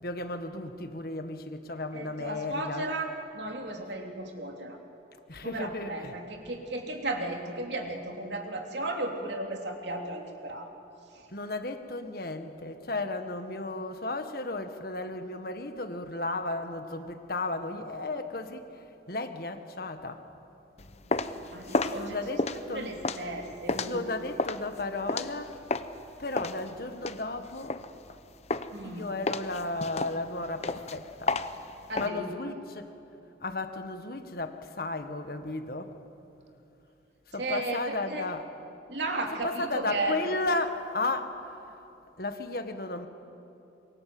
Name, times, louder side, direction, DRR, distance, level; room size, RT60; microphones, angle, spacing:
voice 1, 0.0-2.8 5.3-6.1 11.3-20.3 21.9-22.9 23.8-25.5 26.2-27.8 28.8-31.4 32.0-32.9 33.4-36.0 37.3-38.4 39.4-41.8 42.2-43.1, left 2 dB, 55° left, 7 dB, 1.6 m, -34 dB
voice 2, 1.9-4.8 5.4-10.7 11.1-11.2 21.0-22.2 22.7-24.1 28.7-29.1 31.9-32.2 37.4-38.3 38.9-40.2, right 2 dB, 70° right, 2 dB, 3.1 m, -35 dB
sound 1, 20.8-26.0 26.4-28.2 28.5-28.9 29.3-32.1, left 3 dB, 35° left, 0.8 m, -32 dB
26.5 x 23.5 x 7.8 m, 2.8 s
head